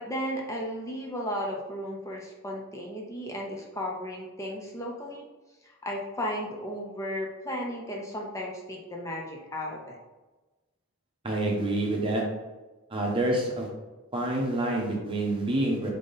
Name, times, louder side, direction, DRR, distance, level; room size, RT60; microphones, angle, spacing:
voice 1, 0.0-5.3 5.6-10.0, equal, 15° left, -1 dB, 0.6 m, -35 dB
voice 2, 11.2-12.2 12.9-13.7 14.1-15.9, right 1 dB, 25° right, -2 dB, 0.9 m, -27 dB
3.7 x 3.6 x 3.9 m, 1.2 s
head